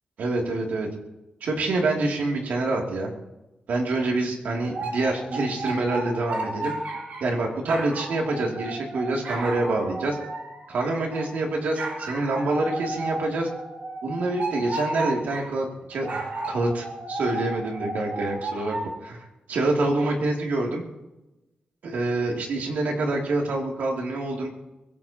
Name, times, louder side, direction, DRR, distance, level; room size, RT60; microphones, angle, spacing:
voice 1, 0.2-0.9 1.4-3.1 3.7-6.7 7.2-10.2 10.7-13.5 14.0-16.2 16.5-18.8 19.0-20.8 21.8-24.5, right 2 dB, 90° right, 0 dB, 2.8 m, -26 dB
sound 1, 4.6-7.3 7.7-11.3 11.7-15.5 15.9-18.9, right 2 dB, 70° right, 5.1 m, -33 dB
23.5 x 17.0 x 3.0 m, 1.0 s
wide cardioid pair, 105°, 3 cm